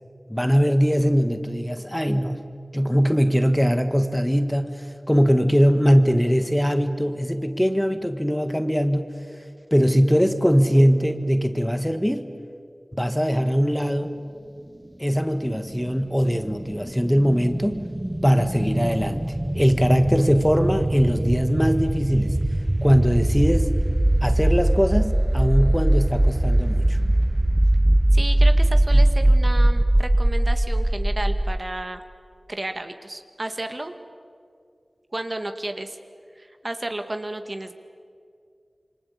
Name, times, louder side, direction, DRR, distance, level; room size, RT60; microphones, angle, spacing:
voice 1, 0.3-2.4 2.7-9.0 9.7-12.2 12.9-14.1 15.0-17.8 18.2-19.2 19.5-22.4 22.8-23.7 24.2-27.0, equal, 5° left, 8 dB, 1.7 m, -21 dB
sound 1, 15.7-31.6, right 1 dB, 25° right, 1.3 m, -21 dB
voice 2, 28.1-32.0 32.5-33.9 35.1-36.0 36.4-37.7, right 1 dB, 45° right, 7 dB, 1.9 m, -32 dB
27.5 x 24.5 x 8.7 m, 2.3 s
wide cardioid pair, 45°, 0 cm